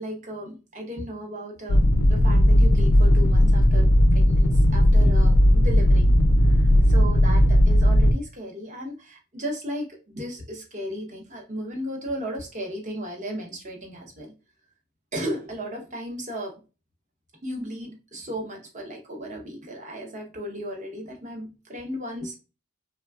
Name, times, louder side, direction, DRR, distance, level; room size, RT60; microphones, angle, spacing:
voice 1, 0.0-14.3 15.1-16.6 17.4-22.4, equal, 35° right, 0 dB, 0.7 m, -35 dB
sound 1, 1.7-8.1, equal, 85° left, 0.5 m, -17 dB
3.3 x 2.2 x 2.2 m, 0.30 s
head